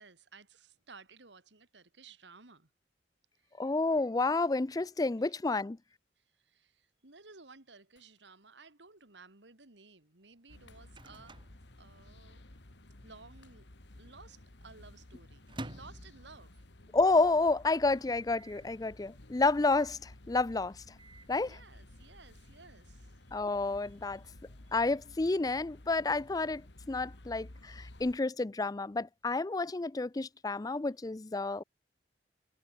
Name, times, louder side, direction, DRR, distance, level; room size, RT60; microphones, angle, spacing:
voice 1, 0.0-2.7 3.3-3.6 6.2-11.4 11.8-12.4 13.0-13.7 14.0-16.7 21.4-23.5 23.8-24.3 24.7-24.9, right 4 dB, 75° right, 2.7 m, -56 dB
voice 2, 3.6-5.8 16.9-20.8 21.3-21.6 23.3-24.2 24.7-31.6, left 3 dB, 20° left, 0.4 m, -30 dB
Shatter, 8.0-8.7 9.0-9.1 10.7-11.4 11.7-11.9 13.4-14.1 14.5-14.6, left 6 dB, 90° left, 8.0 m, -70 dB
Microwave oven, 10.3-12.5 12.8-12.9 13.1-13.7 14.1-16.9 17.3-17.4 17.6-17.7 18.3-18.7 19.6-20.0 20.7-21.4, right 1 dB, 25° right, 2.3 m, -50 dB
sound 1, 10.5-28.2, left 1 dB, 70° left, 1.9 m, -54 dB
head